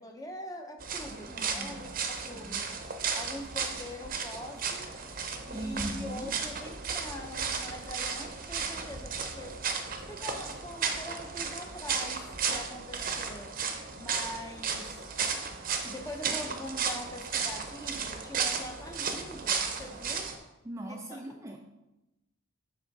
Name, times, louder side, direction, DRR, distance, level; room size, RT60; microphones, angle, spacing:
voice 1, 0.0-2.8 3.1-4.9 5.5-9.6 10.1-13.5 13.9-15.1 15.8-20.3 20.9-21.2, left 1 dB, 15° left, 4 dB, 0.7 m, -43 dB
sound 1, 0.8-20.4, right 5 dB, 45° right, 0.7 m, -34 dB
voice 2, 1.3-2.0 2.3-2.6 5.5-6.3 20.6-21.6, equal, 15° right, 2 dB, 0.4 m, -40 dB
7.3 x 3.6 x 5.3 m, 0.95 s
head